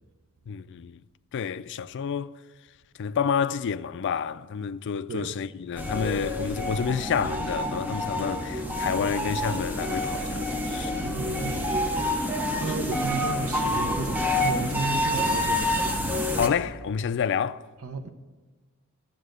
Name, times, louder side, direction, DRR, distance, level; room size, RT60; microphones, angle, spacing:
voice 1, 0.5-1.0 1.3-2.4 3.0-10.9 16.3-17.7, left 7 dB, 55° left, 0.3 m, -29 dB
sound 1, 5.8-16.5, left 1 dB, 10° right, 0.8 m, -28 dB
voice 2, 11.0-12.1 12.6-15.9 17.8-18.1, right 4 dB, 70° right, 0.7 m, -33 dB
13.0 x 7.4 x 6.4 m
head